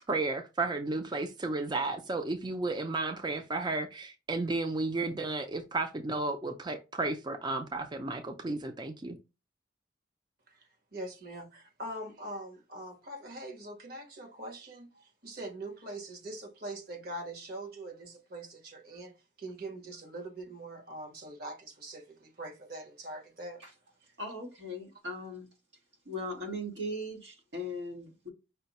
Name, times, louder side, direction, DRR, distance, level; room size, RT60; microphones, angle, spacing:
voice 1, 0.1-9.2, right 2 dB, 25° right, 0.4 m, -33 dB
voice 2, 10.5-23.6, right 1 dB, 60° right, 1.3 m, -43 dB
voice 3, 24.2-25.5 26.0-28.3, left 1 dB, 90° right, 1.7 m, -38 dB
5.5 x 2.1 x 4.0 m
head